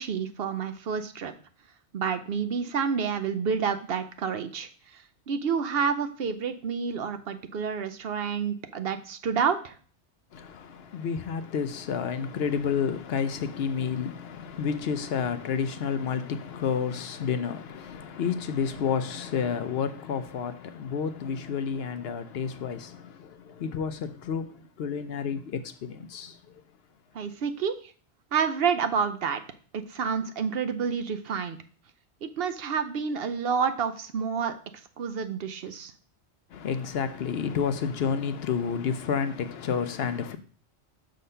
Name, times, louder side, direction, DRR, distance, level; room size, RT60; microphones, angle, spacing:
voice 1, 0.0-1.3 1.9-9.8 27.1-27.9 28.3-29.4 29.7-31.6 32.2-34.6 35.0-35.9, right 6 dB, 60° right, 0.8 m, -29 dB
voice 2, 10.3-26.6 36.5-40.4, left 6 dB, 65° left, 0.8 m, -30 dB
6.6 x 3.9 x 5.4 m
omnidirectional pair, 1.2 m